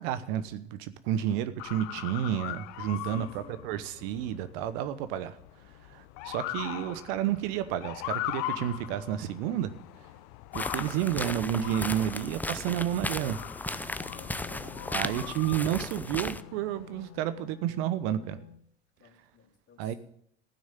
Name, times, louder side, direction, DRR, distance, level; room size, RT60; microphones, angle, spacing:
voice 1, 0.0-5.4 5.9-9.7 10.5-13.9 14.9-18.4 19.8-19.9, right 11 dB, 65° right, 1.0 m, -31 dB
Motor vehicle (road) / Siren, 1.6-17.2, left 16 dB, 60° left, 0.7 m, -41 dB
voice 2, 2.9-3.7 14.1-15.4 19.0-20.0, left 5 dB, 45° left, 3.4 m, -53 dB
sound 1, 10.5-16.4, left 2 dB, 5° left, 0.5 m, -36 dB
Wind instrument woodwind instrument, 13.5-18.6, left 9 dB, 85° left, 0.9 m, -50 dB
15.0 x 6.4 x 9.0 m
hypercardioid pair, 75°, 32 cm